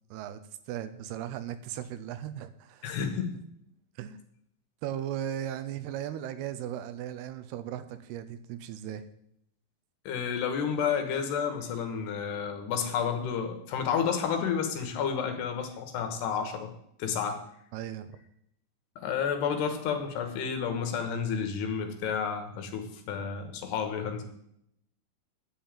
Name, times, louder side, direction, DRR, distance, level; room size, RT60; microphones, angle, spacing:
voice 1, 0.1-0.4 0.7-2.9 4.0-4.2 4.8-9.0 17.7-18.2, right 11 dB, 80° right, 10 dB, 2.6 m, -37 dB
voice 2, 2.8-3.4 10.1-16.7 17.0-17.4 19.0-24.2, left 7 dB, 80° left, 5 dB, 3.4 m, -31 dB
11.0 x 5.6 x 8.8 m, 0.74 s
omnidirectional pair, 4.9 m